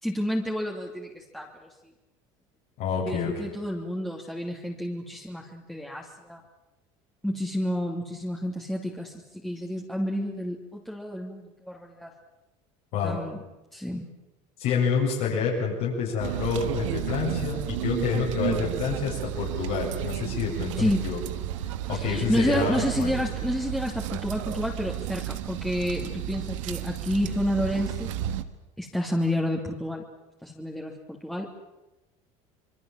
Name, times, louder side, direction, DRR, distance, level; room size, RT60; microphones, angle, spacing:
voice 1, 0.0-1.7 3.0-6.4 7.2-12.1 13.0-13.4 13.7-14.1 20.8-21.0 21.9-28.1 28.8-30.0 30.4-31.5, equal, ahead, -2 dB, 2.9 m, -30 dB
voice 2, 2.8-3.3 12.9-13.2 14.6-21.2 21.9-23.1, left 5 dB, 70° left, -3 dB, 7.5 m, -28 dB
sound 1, 16.2-28.4, right 13 dB, 90° right, 1.4 m, -32 dB
26.5 x 22.0 x 7.6 m, 1.0 s
supercardioid pair, 95°, 16 cm